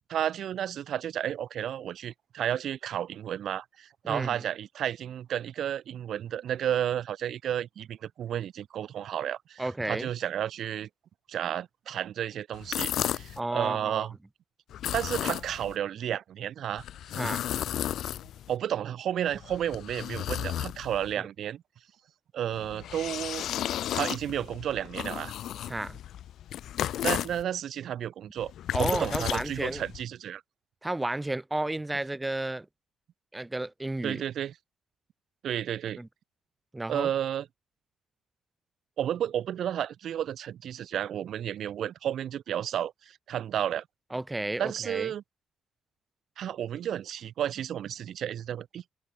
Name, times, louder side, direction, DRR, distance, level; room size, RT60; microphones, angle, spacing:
voice 1, 0.1-10.9 11.3-14.2 14.9-16.8 18.5-21.6 22.3-23.5 23.9-25.3 27.0-28.5 28.8-30.4 34.0-34.5 35.4-36.0 36.9-37.5 39.0-43.8 44.6-45.2 46.4-48.8, right 10 dB, 70° right, 0.7 m, -32 dB
voice 2, 4.0-4.4 9.6-10.1 13.4-14.1 17.2-17.5 25.7-26.0 28.7-29.8 30.8-32.7 33.3-34.2 36.0-36.1 36.7-37.1 44.1-45.1, right 2 dB, 15° right, 3.5 m, -32 dB
sound 1, 12.5-13.4 14.7-15.8 16.8-18.6 19.3-21.1 22.5-27.4 28.4-30.0, left 11 dB, 75° left, 0.4 m, -34 dB
cardioid pair, 90°, 0 cm